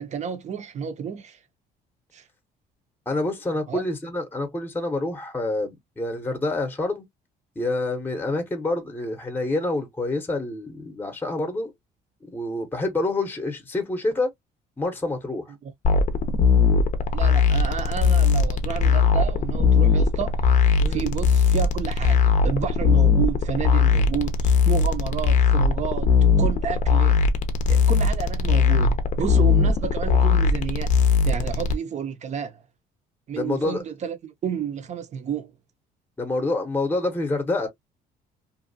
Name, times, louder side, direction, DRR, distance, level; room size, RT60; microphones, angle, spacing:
voice 1, 0.0-1.4 2.1-2.3 3.7-3.8 15.5-15.7 17.1-20.4 20.9-27.2 27.7-30.9 31.2-32.6 33.3-35.5, right 7 dB, 45° right, 0.6 m, -31 dB
voice 2, 3.1-7.0 7.6-11.7 12.3-14.3 14.8-15.4 20.8-21.0 33.3-33.8 36.2-37.7, left 2 dB, 10° left, 0.8 m, -27 dB
sound 1, 15.8-31.7, left 5 dB, 45° left, 0.5 m, -20 dB
2.6 x 2.3 x 2.6 m
cardioid pair, 110°, 17 cm